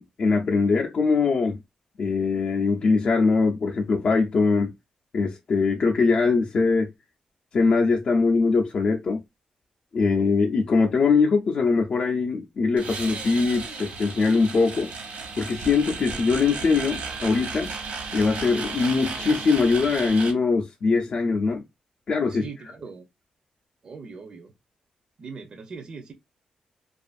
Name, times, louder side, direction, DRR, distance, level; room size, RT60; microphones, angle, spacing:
voice 1, 0.0-1.6 2.0-4.7 5.1-6.9 7.5-9.2 9.9-14.9 15.4-17.7 18.1-21.6 22.1-22.4, left 4 dB, 50° left, 0.5 m, -22 dB
sound 1, 12.8-20.3, right 4 dB, 80° right, 0.9 m, -34 dB
voice 2, 22.3-23.1 23.8-24.5 25.2-26.1, right 5 dB, 45° right, 0.5 m, -40 dB
2.5 x 2.4 x 2.3 m
wide cardioid pair, 140°, 2 cm